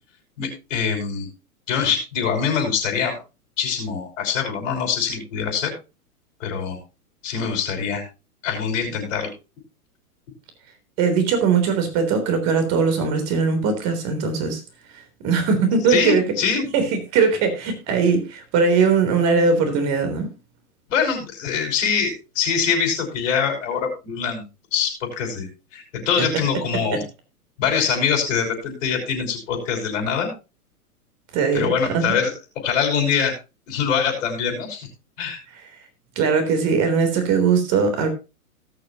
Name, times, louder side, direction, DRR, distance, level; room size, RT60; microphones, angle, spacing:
voice 1, 0.4-1.3 1.7-3.2 3.6-5.7 6.4-6.8 7.2-8.0 8.4-9.3 15.9-16.7 20.9-24.4 24.7-25.5 25.7-27.0 27.6-30.3 31.5-32.3 32.6-33.3 33.7-34.9 35.2-35.4, left 6 dB, 55° left, 2 dB, 5.8 m, -23 dB
voice 2, 11.0-14.6 15.2-16.3 16.7-20.3 26.2-26.3 31.3-32.2 36.2-38.1, right 5 dB, 35° right, 8 dB, 3.6 m, -20 dB
18.5 x 6.8 x 2.9 m, 0.29 s
hypercardioid pair, 120°, 45 cm